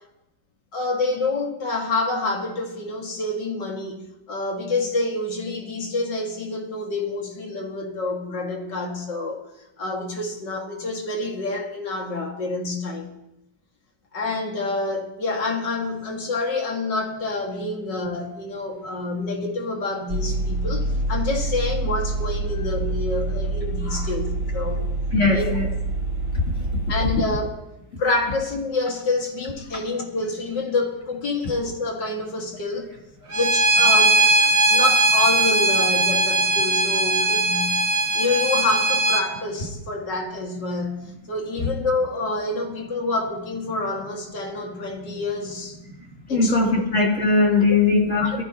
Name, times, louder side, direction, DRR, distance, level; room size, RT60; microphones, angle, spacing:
voice 1, 0.7-9.4 9.8-13.1 14.1-24.9 25.3-25.6 26.9-27.5 28.0-32.9 33.3-34.2 34.7-37.8 38.1-45.8 46.3-46.6 47.7-47.8 48.2-48.4, left 3 dB, 65° left, 2.8 m, -27 dB
Vehicle, 20.1-27.4, right 2 dB, 75° right, 4.2 m, -26 dB
voice 2, 25.1-25.7 46.3-48.4, left 3 dB, 40° left, 3.4 m, -19 dB
Bowed string instrument, 33.3-39.2, right 2 dB, 40° right, 1.6 m, -19 dB
21.5 x 14.5 x 3.0 m
omnidirectional pair, 2.1 m